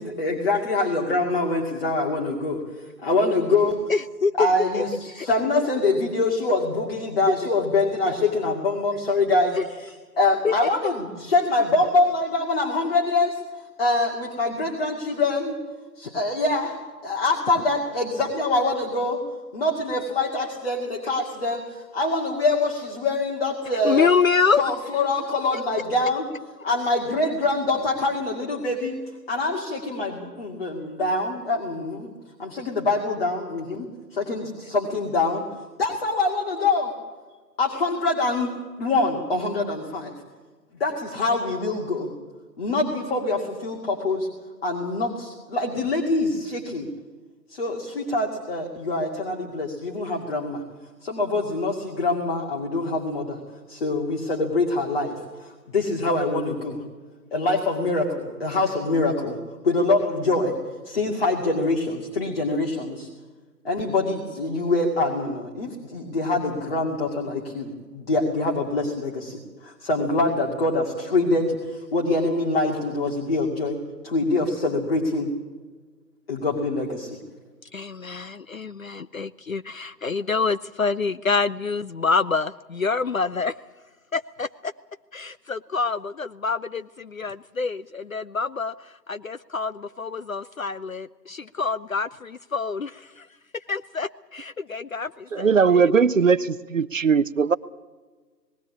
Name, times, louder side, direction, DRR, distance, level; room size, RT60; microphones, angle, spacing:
voice 1, 0.0-3.9 4.4-13.4 13.8-15.6 16.0-16.8 17.0-19.2 19.5-24.1 24.6-26.3 26.6-29.0 29.3-32.1 32.4-35.4 35.8-36.9 37.6-38.5 38.8-40.1 40.8-42.1 42.6-44.3 44.6-46.9 47.5-50.6 51.0-53.4 53.7-56.8 57.3-59.4 59.6-60.6 60.8-63.1 63.6-75.3 76.3-77.2, left 2 dB, 35° left, 0 dB, 2.4 m, -24 dB
voice 2, 3.9-4.3 4.7-4.8 5.2-5.3 9.5-9.6 10.4-10.5 23.8-24.6 77.7-83.5 84.1-84.7 85.1-88.7 89.1-93.2 93.7-95.5, left 4 dB, 55° left, 15 dB, 0.5 m, -26 dB
voice 3, 95.3-97.6, right 5 dB, 50° right, 18 dB, 0.6 m, -19 dB
19.5 x 16.0 x 8.5 m, 1.4 s
figure-of-eight pair, 150°, 50 cm